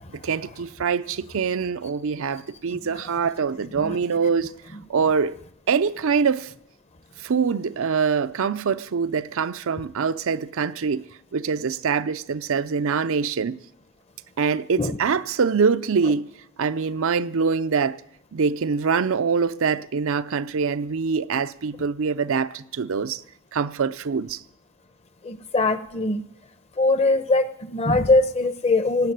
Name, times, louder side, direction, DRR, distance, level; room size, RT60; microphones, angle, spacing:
voice 1, 0.2-4.5 4.9-5.4 5.7-6.5 7.2-13.6 14.4-18.0 18.3-23.2 23.5-24.4, right 5 dB, 65° right, 0.5 m, -24 dB
voice 2, 25.2-26.2 26.8-29.1, left 2 dB, 30° left, 0.8 m, -21 dB
17.5 x 8.2 x 9.3 m
head